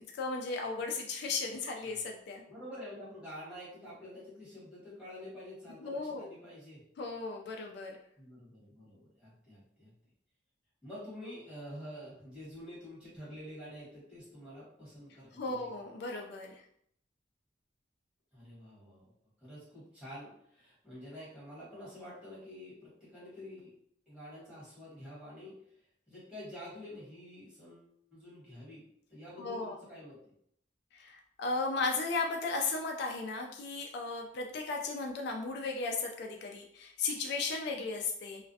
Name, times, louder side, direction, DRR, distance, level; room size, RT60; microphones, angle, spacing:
voice 1, 0.1-2.4 5.8-6.3 7.0-8.0 15.3-16.6 29.4-29.8 30.9-38.5, left 3 dB, 65° left, 2 dB, 0.3 m, -35 dB
voice 2, 2.5-6.8 8.2-9.9 10.8-15.7 18.3-19.1 19.4-23.7 24.1-28.8 29.1-30.3, equal, 5° right, -10 dB, 1.3 m, -48 dB
2.4 x 2.1 x 2.6 m, 0.70 s
head